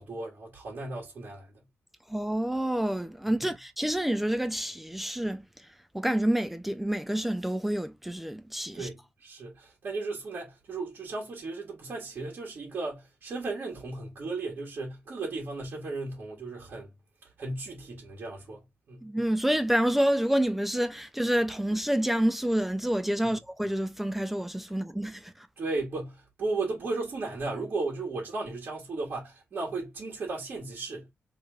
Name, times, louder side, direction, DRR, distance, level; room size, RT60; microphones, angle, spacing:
voice 1, 0.0-1.6 8.7-16.9 17.4-19.1 23.2-23.4 25.6-31.1, right 3 dB, 50° right, 1.7 m, -35 dB
voice 2, 2.1-5.4 5.9-8.9 19.0-25.5, right 1 dB, 5° right, 0.4 m, -28 dB
4.9 x 3.1 x 2.4 m
wide cardioid pair, 160°, 4 cm